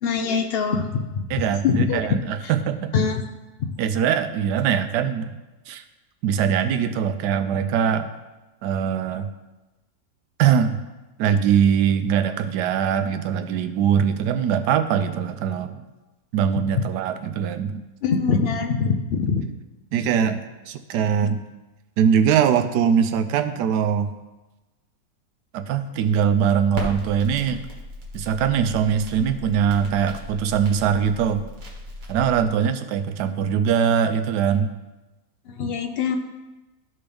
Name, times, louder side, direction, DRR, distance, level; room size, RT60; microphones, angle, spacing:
voice 1, 0.0-1.2 1.6-2.0 2.9-3.2 3.6-3.7 16.7-16.9 18.0-19.4 35.5-36.2, left 5 dB, 70° left, 5 dB, 0.5 m, -23 dB
voice 2, 1.3-2.9 3.8-5.4 5.7-5.8 6.2-8.1 8.6-9.3 10.4-10.8 11.2-15.8 16.3-17.8 19.9-21.4 22.0-24.1 25.5-27.7 28.1-31.4 32.1-34.7, right 8 dB, 85° right, 9 dB, 1.2 m, -22 dB
Crackle, 26.7-32.5, left 1 dB, 60° right, 1.9 m, -36 dB
12.5 x 4.4 x 3.4 m, 1.1 s
omnidirectional pair, 1.7 m